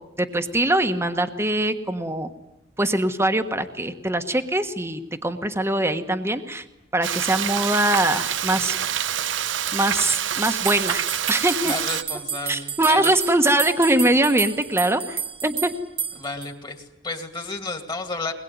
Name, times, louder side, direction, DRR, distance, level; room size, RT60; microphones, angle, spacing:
voice 1, 0.2-2.3 2.8-6.6 6.9-8.7 9.7-11.0 11.3-11.7 12.5-15.7, right 1 dB, 15° right, 7 dB, 1.4 m, -22 dB
Frying (food), 7.0-12.0, right 10 dB, 80° right, 0.9 m, -26 dB
sound 1, 10.4-16.5, right 7 dB, 30° right, 1.2 m, -31 dB
voice 2, 11.6-13.1 16.1-18.3, left 3 dB, 25° left, 6 dB, 2.4 m, -32 dB
22.5 x 21.0 x 9.5 m, 0.93 s
head